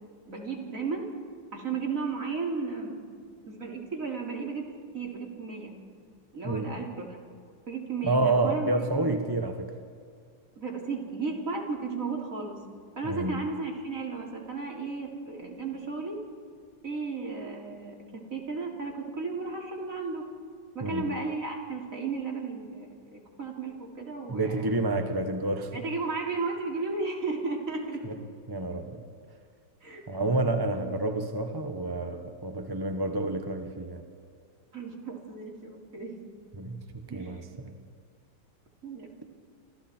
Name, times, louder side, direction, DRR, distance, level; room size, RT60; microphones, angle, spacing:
voice 1, 0.3-1.0 1.5-3.0 3.5-4.6 4.9-5.7 6.3-7.2 7.7-9.1 10.6-12.6 13.0-16.2 16.8-20.2 20.8-24.8 25.7-28.0 29.8-30.0 30.8-30.9 34.7-36.2 37.1-37.4 38.8-39.1, right 4 dB, 45° right, 0 dB, 3.6 m, -34 dB
voice 2, 6.4-6.8 8.0-9.7 13.0-13.4 20.8-21.1 24.3-25.8 28.0-28.1 28.5-29.0 30.1-34.0 36.5-37.8, right 2 dB, 15° right, 6 dB, 1.0 m, -29 dB
29.5 x 26.0 x 4.5 m, 2.2 s
omnidirectional pair, 2.1 m